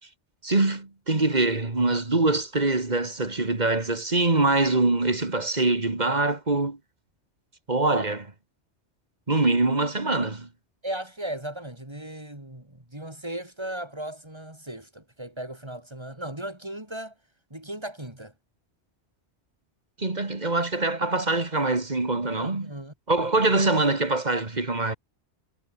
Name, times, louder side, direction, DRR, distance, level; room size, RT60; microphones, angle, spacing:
voice 1, 0.4-6.8 7.7-8.3 9.3-10.5 20.0-22.7 23.1-25.0, right 2 dB, 40° right, 2.4 m, -24 dB
voice 2, 10.8-17.1 17.5-18.3 22.3-22.9, right 1 dB, 25° right, 4.7 m, -36 dB
omnidirectional pair, 1.2 m